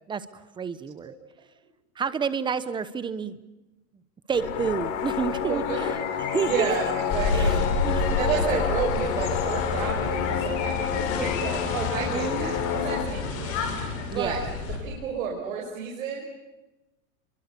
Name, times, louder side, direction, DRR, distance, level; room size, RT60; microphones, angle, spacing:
voice 1, 0.1-1.1 2.0-3.4 4.3-6.0 6.3-6.7 7.3-8.2 12.1-12.5 14.1-14.4, right 6 dB, 10° right, 14 dB, 0.9 m, -30 dB
sound 1, 4.3-13.0, left 9 dB, 60° left, 3.9 m, -29 dB
voice 2, 5.4-5.8 6.1-13.7 14.1-14.4 14.7-16.2, right 6 dB, 75° right, -1 dB, 5.8 m, -31 dB
sound 2, 7.1-14.8, left 3 dB, 35° left, 6.9 m, -29 dB
29.0 x 24.0 x 6.9 m, 1.1 s
supercardioid pair, 145°, 40 cm